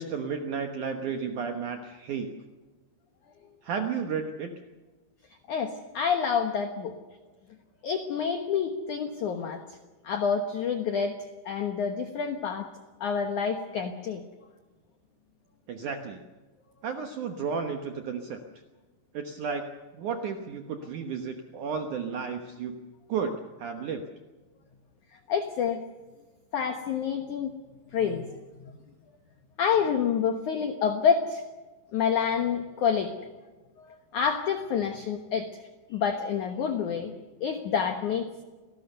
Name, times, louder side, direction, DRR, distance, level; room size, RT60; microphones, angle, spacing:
voice 1, 0.0-2.3 3.6-4.5 15.7-16.2 16.8-18.4 19.1-19.7 19.9-22.8 23.1-24.0, right 6 dB, 85° right, 5 dB, 1.7 m, -33 dB
voice 2, 5.5-6.9 7.8-9.6 10.0-12.7 13.0-14.2 25.3-25.8 26.5-27.5 27.9-28.4 29.6-31.4 31.9-33.1 34.1-35.5 35.9-37.1 37.4-38.4, left 7 dB, 80° left, 7 dB, 1.7 m, -28 dB
27.5 x 18.0 x 6.8 m, 1.3 s
omnidirectional pair, 5.4 m